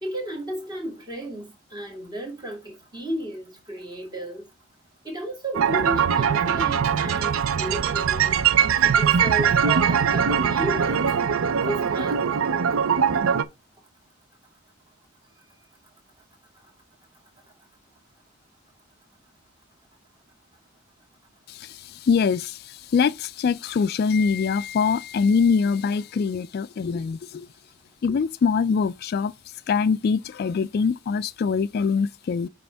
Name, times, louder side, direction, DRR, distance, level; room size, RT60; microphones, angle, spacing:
voice 1, 0.0-4.4 5.0-8.4 8.8-11.1 11.5-12.3, right 1 dB, 20° right, 2.3 m, -33 dB
sound 1, 5.5-13.4, right 7 dB, 80° right, 0.5 m, -21 dB
voice 2, 21.5-27.5 28.0-29.3 29.7-32.5, left 5 dB, 50° left, 0.3 m, -23 dB
9.4 x 3.5 x 3.4 m
head